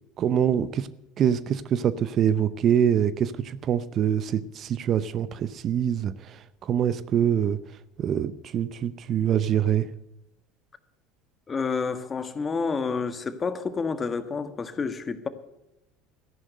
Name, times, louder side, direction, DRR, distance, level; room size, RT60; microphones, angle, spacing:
voice 1, 0.2-0.9 1.2-7.6 8.0-9.9, right 9 dB, 45° right, 0.7 m, -25 dB
voice 2, 11.5-15.3, left 5 dB, 30° left, 1.5 m, -29 dB
14.0 x 11.0 x 6.6 m
hypercardioid pair, 80°, 0 cm